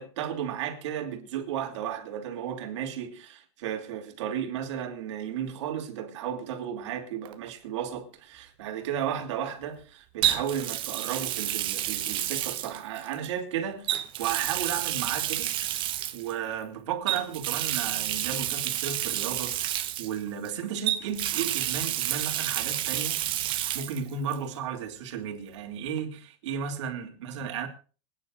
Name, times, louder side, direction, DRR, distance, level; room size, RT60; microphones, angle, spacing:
voice 1, 0.0-15.8 16.1-23.2 23.7-27.7, right 8 dB, 80° right, 2.9 m, -34 dB
Water tap faucet, 7.3-7.5 10.2-13.3 13.8-16.3 17.1-20.5 20.9-24.0 24.3-24.4 26.0-26.1, right 13 dB, 35° right, 1.2 m, -30 dB
25.5 x 10.0 x 2.6 m
supercardioid pair, 155°, 15 cm